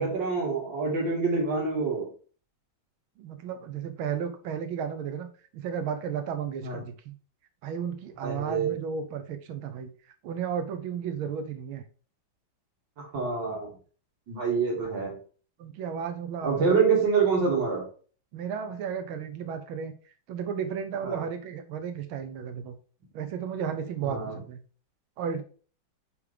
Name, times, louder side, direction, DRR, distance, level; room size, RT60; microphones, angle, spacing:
voice 1, 0.0-2.1 6.6-6.8 8.2-8.7 13.0-13.7 14.3-15.1 16.4-17.8 21.0-21.2 24.0-24.4, right 5 dB, 60° right, -2 dB, 2.8 m, -26 dB
voice 2, 3.2-5.3 5.5-7.2 7.6-9.9 10.2-11.8 15.6-16.7 18.3-19.9 20.3-22.8 23.1-24.6 25.2-25.4, right 7 dB, 90° right, 7 dB, 1.6 m, -33 dB
9.5 x 3.6 x 3.3 m, 0.41 s
omnidirectional pair, 2.2 m